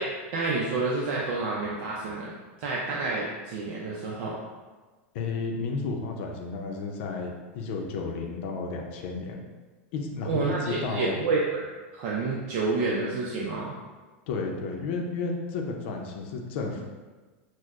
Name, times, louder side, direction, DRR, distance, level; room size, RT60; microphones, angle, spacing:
voice 1, 0.0-4.4 10.3-13.7, right 3 dB, 60° right, -4 dB, 0.6 m, -29 dB
voice 2, 5.1-9.4 9.9-11.2 14.3-16.8, left 4 dB, 65° left, 1 dB, 0.6 m, -32 dB
6.0 x 2.1 x 2.4 m, 1.3 s
supercardioid pair, 135°, 7 cm